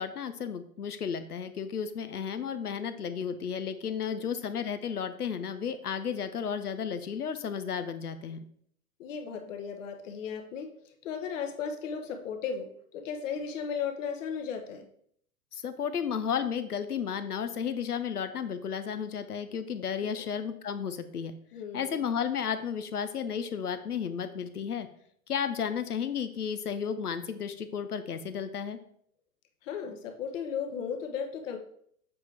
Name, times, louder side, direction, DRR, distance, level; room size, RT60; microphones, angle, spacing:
voice 1, 0.0-8.4 15.5-21.3 21.7-24.9 25.3-28.8, left 7 dB, 90° left, 10 dB, 0.7 m, -33 dB
voice 2, 9.0-14.9 20.0-20.3 21.5-22.0 29.6-31.6, left 6 dB, 55° left, 6 dB, 1.1 m, -36 dB
7.4 x 4.5 x 3.4 m, 0.67 s
figure-of-eight pair, 95°, 44 cm